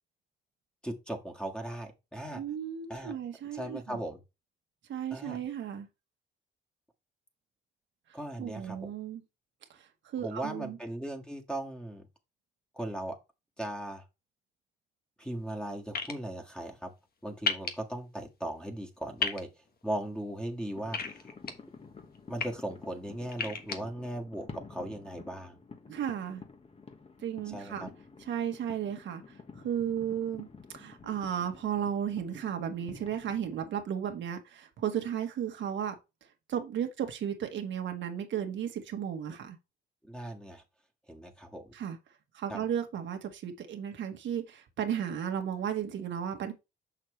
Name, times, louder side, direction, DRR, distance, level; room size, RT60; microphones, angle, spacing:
voice 1, 0.8-2.4 2.9-3.2 3.5-4.2 5.1-5.4 8.1-8.9 10.2-12.1 12.7-13.2 13.6-14.0 15.2-16.9 17.2-19.5 19.8-21.3 22.3-25.6 27.5-27.9 40.0-40.6 41.1-41.7 42.5-42.6, right 1 dB, 5° left, 1.8 m, -38 dB
voice 2, 2.3-4.0 4.9-5.9 8.1-9.2 9.7-10.8 25.9-26.4 27.2-27.9 28.2-30.5 30.7-35.9 36.5-39.6 41.7-42.0 42.3-46.5, right 9 dB, 70° right, 1.3 m, -34 dB
sound 1, 15.9-16.1 17.5-17.7 19.2-19.4 20.9-21.5 22.2-22.5 23.3-23.8, left 5 dB, 50° left, 1.3 m, -31 dB
sound 2, 20.8-33.7, left 4 dB, 30° left, 1.4 m, -50 dB
6.5 x 5.9 x 3.2 m
cardioid pair, 90°, 20 cm